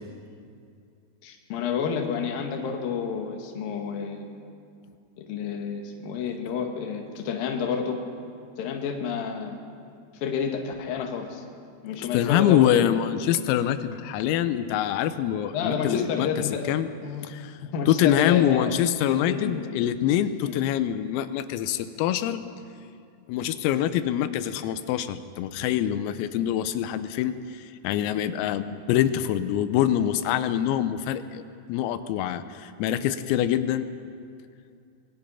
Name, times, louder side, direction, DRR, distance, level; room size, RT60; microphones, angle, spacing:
voice 1, 1.2-4.3 5.2-8.0 8.6-9.6 10.2-11.4 11.8-12.7 15.5-16.8 17.0-17.3 17.6-18.7 19.1-19.7 20.4-20.5, left 6 dB, 55° left, 2 dB, 3.0 m, -30 dB
voice 2, 12.1-16.3 16.7-16.9 17.2-17.6 17.9-22.4 23.3-27.4 27.8-31.4 31.7-33.9, left 11 dB, 90° left, 11 dB, 3.6 m, -25 dB
26.0 x 21.0 x 5.7 m, 2.4 s
omnidirectional pair, 5.9 m